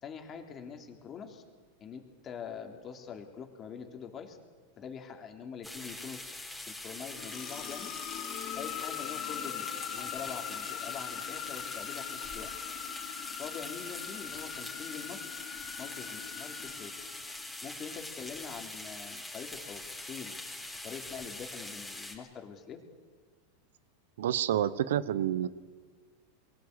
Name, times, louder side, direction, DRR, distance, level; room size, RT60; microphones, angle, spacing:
voice 1, 0.0-1.4 1.8-4.4 4.8-7.9 8.6-12.5 13.4-15.2 15.8-16.9 17.6-20.3 20.8-22.8, left 6 dB, 35° left, 4 dB, 3.5 m, -44 dB
sound 1, 5.6-22.2, left 2 dB, 5° left, 4.9 m, -43 dB
sound 2, 6.9-17.7, left 12 dB, 50° left, 1.6 m, -41 dB
voice 2, 24.2-25.5, right 11 dB, 75° right, 17 dB, 1.0 m, -28 dB
22.5 x 18.0 x 8.3 m, 1.5 s
hypercardioid pair, 100°, 0 cm